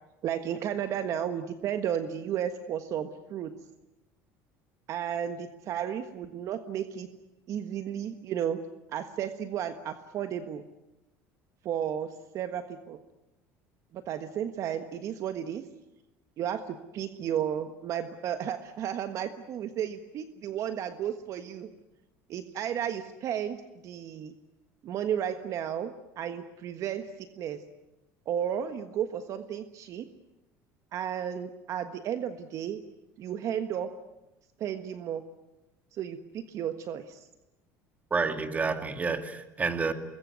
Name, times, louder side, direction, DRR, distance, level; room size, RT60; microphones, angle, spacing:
voice 1, 0.2-3.5 4.9-7.1 7.5-8.6 8.9-10.6 11.6-13.0 13.9-15.6 16.4-21.7 22.3-23.6 23.8-24.3 24.8-27.6 28.2-30.1 30.9-32.8 33.2-33.9 34.6-35.2 35.9-37.3, right 9 dB, 50° right, 9 dB, 1.5 m, -33 dB
voice 2, 38.1-39.9, right 4 dB, 20° right, 8 dB, 2.3 m, -29 dB
25.0 x 21.5 x 9.5 m, 0.99 s
cardioid pair, 130°, 7 cm